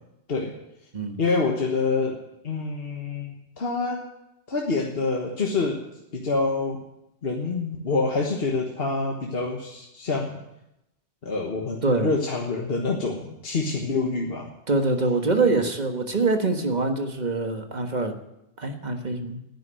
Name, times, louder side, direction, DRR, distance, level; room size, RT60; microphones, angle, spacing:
voice 1, 1.2-2.2 2.4-4.0 4.5-5.8 6.1-6.8 7.2-10.4 11.2-14.5 15.4-15.5, left 3 dB, 60° left, 0 dB, 1.6 m, -26 dB
voice 2, 14.7-18.2 18.6-19.4, right 3 dB, 45° right, 5 dB, 1.5 m, -24 dB
10.0 x 9.5 x 9.9 m, 0.86 s
omnidirectional pair, 1.1 m